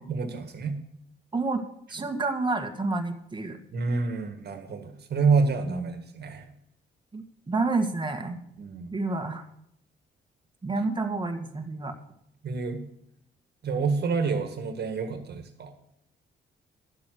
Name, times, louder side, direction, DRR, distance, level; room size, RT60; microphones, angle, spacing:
voice 1, 0.1-0.8 3.7-6.5 8.6-8.9 12.4-12.8 13.6-15.7, right 4 dB, 60° right, 7 dB, 1.8 m, -28 dB
voice 2, 1.3-1.6 1.9-3.6 5.7-5.9 7.1-8.4 8.9-9.5 10.6-11.9, right 3 dB, 25° right, 5 dB, 1.7 m, -29 dB
11.5 x 7.6 x 6.3 m, 0.74 s
cardioid pair, 80°, 19 cm